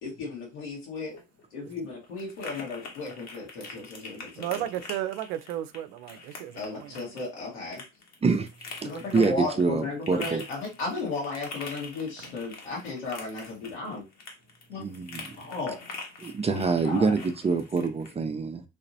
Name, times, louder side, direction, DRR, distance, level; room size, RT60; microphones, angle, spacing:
voice 1, 0.0-1.1 1.5-4.6 6.6-7.8 8.8-14.0 14.7-14.9 15.4-15.8 16.5-17.1, left 3 dB, 80° left, 1.7 m, -35 dB
sound 1, 1.0-18.1, left 3 dB, 50° left, 1.2 m, -45 dB
voice 2, 4.3-7.1, right 13 dB, 70° right, 0.5 m, -34 dB
voice 3, 9.1-10.4 14.8-15.4 16.2-18.6, right 4 dB, 20° right, 0.5 m, -26 dB
3.4 x 2.9 x 2.6 m
hypercardioid pair, 55°, 34 cm